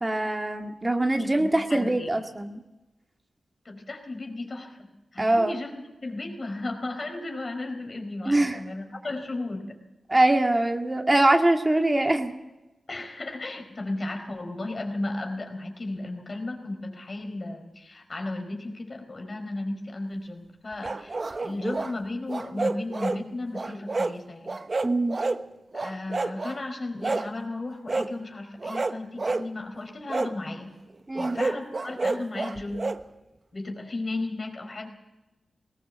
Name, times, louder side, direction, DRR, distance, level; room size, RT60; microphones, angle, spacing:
voice 1, 0.0-2.6 5.2-5.5 8.2-8.6 10.1-12.4 24.8-25.2 31.1-31.4, right 1 dB, 25° right, 4 dB, 2.1 m, -23 dB
voice 2, 1.2-2.1 3.6-4.8 5.1-9.8 12.9-24.6 25.7-30.7 31.2-32.8 33.5-34.9, left 2 dB, 45° left, 5 dB, 4.5 m, -35 dB
sound 1, 20.8-21.9 22.3-23.2 23.5-24.2 24.5-25.4 25.7-26.6 27.0-27.3 27.9-28.1 28.6-29.5 30.1-30.3 31.2-33.0, right 3 dB, 45° right, 1.1 m, -29 dB
19.5 x 18.0 x 7.6 m, 1.0 s
cardioid pair, 50°, 0 cm